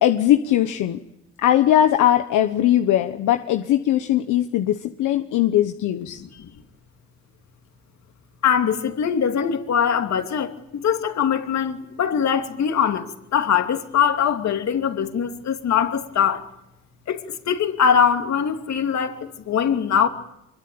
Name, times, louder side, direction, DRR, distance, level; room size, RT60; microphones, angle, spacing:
voice 1, 0.0-1.0 1.4-6.2, left 12 dB, 85° left, 1.2 m, -19 dB
voice 2, 6.2-6.5 8.4-16.5 17.1-20.1, left 7 dB, 65° left, 2.8 m, -22 dB
25.0 x 22.0 x 8.8 m
cardioid pair, 90°, 30 cm